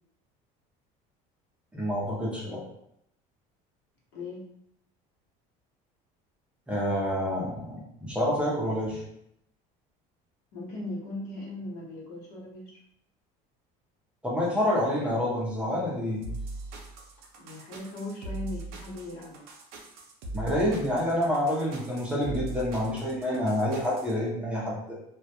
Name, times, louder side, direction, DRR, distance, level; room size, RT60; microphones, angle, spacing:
voice 1, 1.7-2.6 6.7-9.0 14.2-16.2 20.3-24.9, left 1 dB, 5° right, -6 dB, 0.5 m, -28 dB
voice 2, 4.1-4.4 10.5-12.8 17.4-19.5, left 2 dB, 70° left, -4 dB, 0.9 m, -38 dB
sound 1, 16.2-24.1, right 2 dB, 65° right, 0.5 m, -40 dB
2.1 x 2.1 x 2.7 m, 0.75 s
cardioid pair, 160°, 17 cm